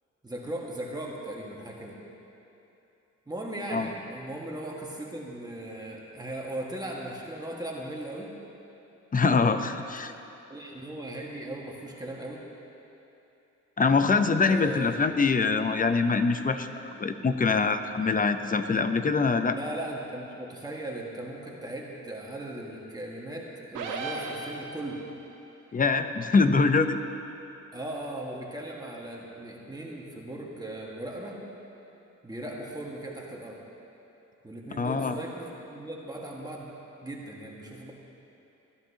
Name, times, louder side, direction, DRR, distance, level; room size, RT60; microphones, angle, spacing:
voice 1, 0.2-2.0 3.3-8.3 10.5-12.4 14.4-15.0 19.5-25.0 27.7-31.4 32.2-33.6 34.4-36.7 37.0-37.9, right 1 dB, 15° right, -3 dB, 1.7 m, -38 dB
voice 2, 9.1-10.1 13.8-19.6 25.7-27.0 34.8-35.2, left 4 dB, 30° left, 9 dB, 0.7 m, -24 dB
sound 1, 23.7-25.1, right 3 dB, 85° right, 1.9 m, -35 dB
20.5 x 12.0 x 2.9 m, 2.9 s
cardioid pair, 90°, 30 cm